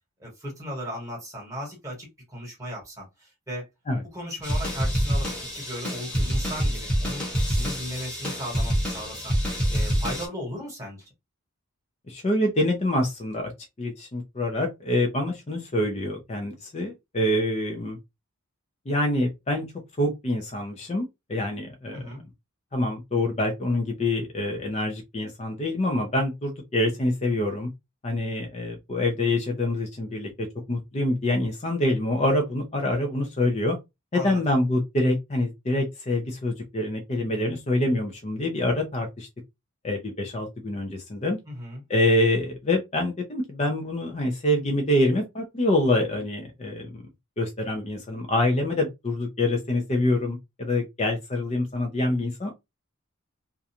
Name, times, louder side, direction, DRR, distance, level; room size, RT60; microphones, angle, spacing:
voice 1, 0.2-3.7 4.1-9.3 9.7-11.1 21.9-22.2 34.1-34.4 41.5-41.8, equal, 15° right, 1.1 m, -36 dB
sound 1, 4.4-10.3, equal, 5° left, 1.0 m, -26 dB
voice 2, 12.1-13.5 13.8-18.0 18.9-19.7 20.0-22.1 22.7-27.7 28.0-33.8 34.1-39.3 39.8-41.4 41.9-47.0 47.4-52.5, left 1 dB, 30° left, 0.5 m, -26 dB
2.4 x 2.2 x 2.8 m
head